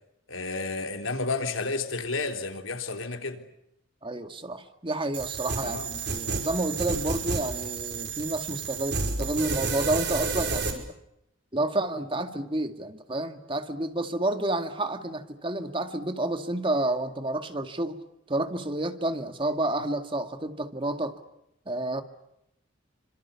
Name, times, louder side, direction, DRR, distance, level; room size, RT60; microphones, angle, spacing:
voice 1, 0.3-3.5 5.6-5.9, left 3 dB, 85° left, 3.8 m, -31 dB
voice 2, 4.0-10.8 11.5-18.0 18.3-21.2 21.7-22.0, right 1 dB, 25° right, 2.1 m, -30 dB
sound 1, 5.1-10.7, right 4 dB, 55° right, 5.6 m, -31 dB
28.0 x 26.5 x 7.1 m
head